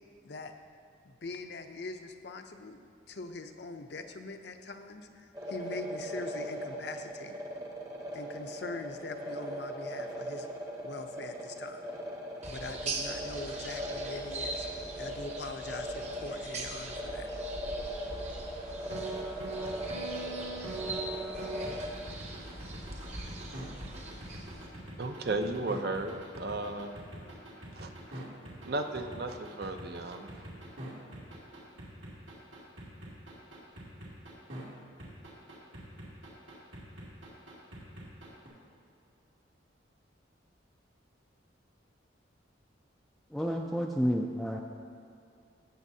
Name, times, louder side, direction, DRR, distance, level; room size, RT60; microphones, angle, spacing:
voice 1, 0.2-0.5 1.0-7.4 8.1-10.5 10.8-11.9 12.5-17.3, left 3 dB, 60° left, 6 dB, 0.6 m, -43 dB
sound 1, 5.3-21.9, equal, 20° right, 0.8 m, -39 dB
sound 2, 12.4-24.7, right 2 dB, 35° right, 1.0 m, -42 dB
sound 3, 18.9-34.6 35.0-38.5, right 2 dB, 75° right, 2.3 m, -43 dB
voice 2, 25.0-26.9 27.8-28.2 28.6-30.3, right 2 dB, 50° right, 6 dB, 0.5 m, -35 dB
voice 3, 43.3-44.6, equal, ahead, -1 dB, 0.3 m, -30 dB
16.0 x 7.0 x 2.7 m, 2.6 s
head